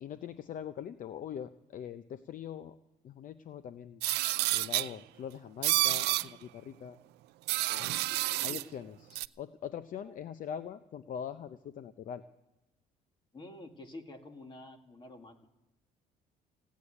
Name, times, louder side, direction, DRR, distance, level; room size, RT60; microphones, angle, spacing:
voice 1, 0.0-2.8 3.0-4.0 4.5-7.0 7.8-8.0 8.4-9.1 9.4-12.2, left 8 dB, 50° left, 11 dB, 0.7 m, -42 dB
sound 1, 4.0-4.9 5.6-6.3 7.5-8.6 9.1-9.3, right 18 dB, 80° right, 0.4 m, -29 dB
voice 2, 7.7-8.7 10.0-10.1 13.3-15.5, left 2 dB, 30° left, 5 dB, 2.1 m, -49 dB
17.0 x 8.4 x 9.8 m, 0.99 s
cardioid pair, 110°, 17 cm